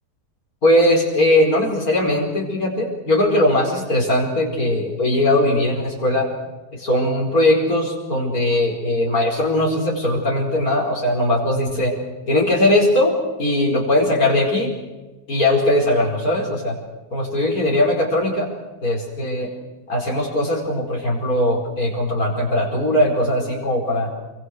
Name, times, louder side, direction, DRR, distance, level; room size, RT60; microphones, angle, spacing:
voice 1, 0.6-6.3 6.7-11.9 12.3-13.1 13.4-14.7 15.3-16.8 17.1-18.5 18.8-19.5 19.9-24.1, left 1 dB, 80° left, -2 dB, 5.4 m, -19 dB
28.0 x 25.0 x 6.6 m, 1.2 s
omnidirectional pair, 1.5 m